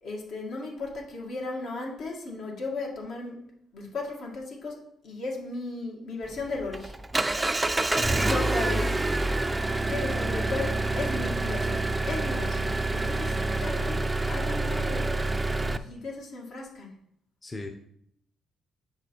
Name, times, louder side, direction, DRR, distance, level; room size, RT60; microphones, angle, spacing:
voice 1, 0.0-3.4 3.7-4.8 5.0-6.9 8.2-9.0 9.8-15.1 15.6-16.9, left 3 dB, 70° left, -1 dB, 2.0 m, -35 dB
Engine, 6.3-15.8, right 2 dB, 15° right, 0.4 m, -27 dB
voice 2, 7.9-8.2 17.4-17.7, left 2 dB, 25° left, 4 dB, 0.7 m, -38 dB
6.6 x 4.9 x 4.5 m, 0.72 s
cardioid pair, 90°, 0 cm